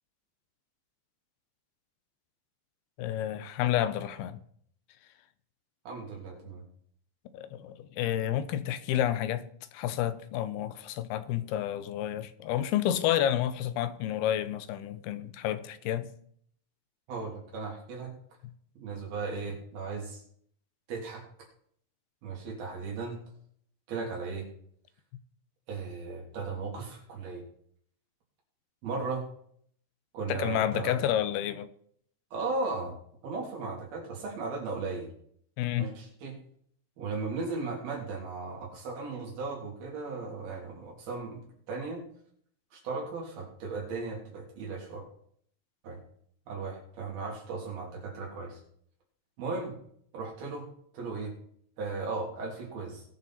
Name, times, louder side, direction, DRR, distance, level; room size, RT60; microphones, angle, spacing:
voice 1, 3.0-4.4 7.3-9.5 9.7-16.1 30.3-31.7 35.6-36.0, left 11 dB, 90° left, 2.8 m, -30 dB
voice 2, 5.9-6.6 17.1-18.1 18.8-20.2 20.9-21.2 22.2-23.2 23.9-24.5 25.7-27.4 28.8-29.2 30.1-31.1 32.3-33.0 33.2-35.1 35.8-36.4 37.0-42.0 42.7-45.0 45.8-46.0 46.5-48.6 49.4-49.7 50.1-50.7 50.9-51.3 51.8-53.0, right 4 dB, 75° right, 5.2 m, -36 dB
20.5 x 6.9 x 4.2 m
omnidirectional pair, 4.4 m